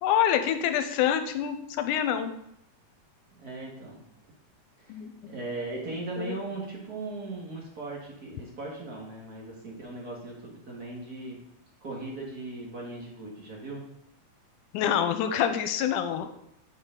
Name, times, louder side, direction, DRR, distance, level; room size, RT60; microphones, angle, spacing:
voice 1, 0.0-2.3 4.9-5.1 6.2-6.4 14.7-16.3, left 9 dB, 85° left, 9 dB, 2.1 m, -26 dB
voice 2, 3.3-4.0 4.8-11.4 11.8-13.9, right 2 dB, 40° right, -3 dB, 1.6 m, -38 dB
7.2 x 6.3 x 3.8 m, 0.77 s
omnidirectional pair, 3.6 m